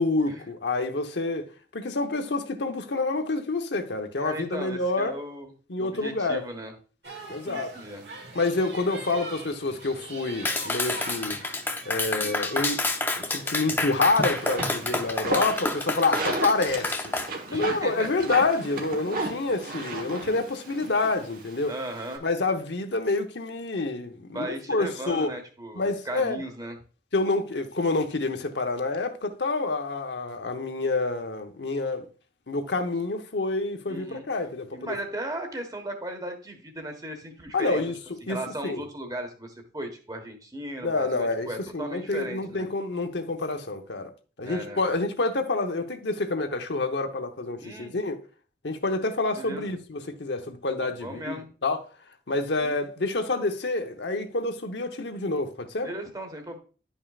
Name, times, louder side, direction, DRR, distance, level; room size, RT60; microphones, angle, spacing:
voice 1, 0.0-1.5 1.7-5.2 5.7-6.4 7.3-7.7 8.3-11.4 11.9-12.8 13.2-17.1 17.5-21.7 22.2-25.3 25.7-26.4 27.1-32.1 32.5-34.9 37.5-38.0 38.3-38.8 40.8-44.1 44.4-48.2 48.6-51.8 52.3-55.9, left 3 dB, 75° left, 0.9 m, -28 dB
voice 2, 4.2-5.5 5.8-6.7 7.4-8.1 12.1-12.4 17.5-18.1 21.7-22.2 24.3-26.8 33.9-34.2 34.7-37.8 38.2-42.7 44.4-44.8 47.6-48.0 49.3-49.7 51.0-51.5 52.6-52.7 55.8-56.6, right 1 dB, 20° right, 1.3 m, -36 dB
sound 1, 7.0-15.8, right 2 dB, 70° right, 2.0 m, -43 dB
Clapping, 10.4-17.3, left 2 dB, 10° left, 0.6 m, -29 dB
sound 2, 14.1-22.2, right 2 dB, 50° right, 1.3 m, -35 dB
11.0 x 5.5 x 2.4 m
head